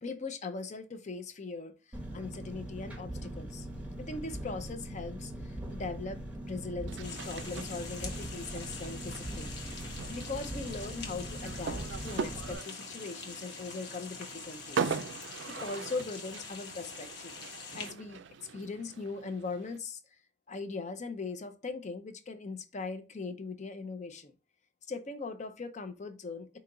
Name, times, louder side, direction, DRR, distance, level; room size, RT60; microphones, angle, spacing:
voice 1, 0.0-3.7 4.0-9.5 10.1-15.0 15.6-17.4 17.7-20.0 20.5-24.3 24.9-26.6, left 3 dB, 40° left, 0.5 m, -40 dB
Engine, 1.9-12.5, right 1 dB, 5° right, 0.8 m, -41 dB
sound 1, 6.9-19.8, right 5 dB, 65° right, 0.4 m, -41 dB
sound 2, 7.0-17.9, left 4 dB, 60° left, 1.1 m, -45 dB
4.9 x 2.8 x 3.8 m
head